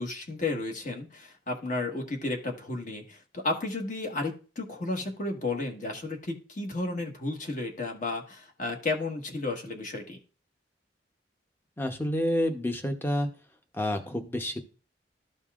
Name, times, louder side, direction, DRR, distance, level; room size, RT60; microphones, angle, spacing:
voice 1, 0.0-10.2, left 2 dB, 45° left, 3 dB, 1.4 m, -33 dB
voice 2, 11.8-13.3 13.7-14.6, left 1 dB, 10° left, 5 dB, 0.8 m, -29 dB
13.0 x 5.4 x 2.4 m, 0.36 s
head